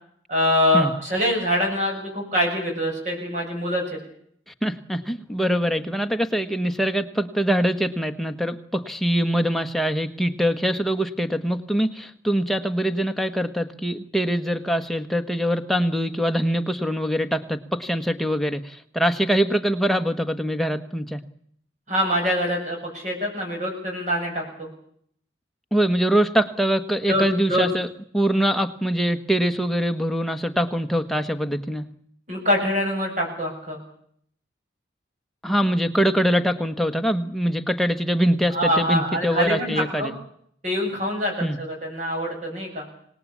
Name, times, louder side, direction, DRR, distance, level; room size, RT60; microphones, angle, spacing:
voice 1, 0.3-3.8 21.9-24.7 27.1-27.6 32.3-33.8 38.5-40.1 40.6-42.8, equal, 40° right, 0 dB, 7.6 m, -24 dB
voice 2, 4.6-21.2 25.7-27.9 28.1-31.8 35.4-40.1 41.4-41.6, equal, ahead, 7 dB, 1.3 m, -23 dB
26.0 x 19.5 x 8.6 m, 0.66 s
head